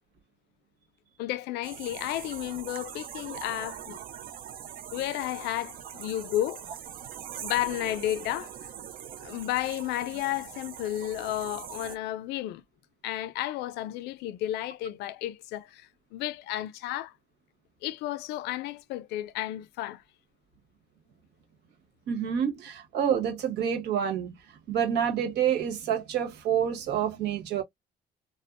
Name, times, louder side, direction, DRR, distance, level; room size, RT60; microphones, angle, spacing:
voice 1, 1.2-4.0 4.9-6.6 7.4-8.7 9.2-12.6 13.0-17.1 17.8-20.0, left 14 dB, 85° left, 0.4 m, -32 dB
sound 1, 1.6-12.0, right 9 dB, 60° right, 0.6 m, -42 dB
voice 2, 22.1-24.3 24.7-27.6, right 8 dB, 80° right, 1.2 m, -28 dB
3.4 x 2.1 x 2.4 m
cardioid pair, 110°, 17 cm